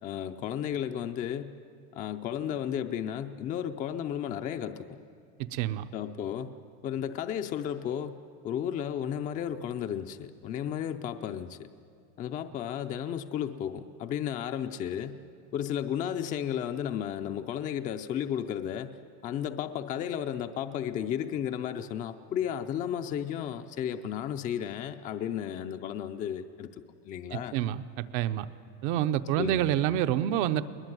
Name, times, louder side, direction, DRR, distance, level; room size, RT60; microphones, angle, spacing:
voice 1, 0.0-1.5 1.9-4.9 5.9-6.5 6.8-8.2 8.4-11.7 12.2-15.2 15.5-19.0 19.2-27.6 29.4-30.0, left 9 dB, 25° left, 8 dB, 0.5 m, -33 dB
voice 2, 5.5-5.9 27.3-28.5 28.8-30.6, right 12 dB, 55° right, 11 dB, 0.9 m, -28 dB
21.5 x 20.0 x 9.4 m, 2.3 s
supercardioid pair, 160°, 32 cm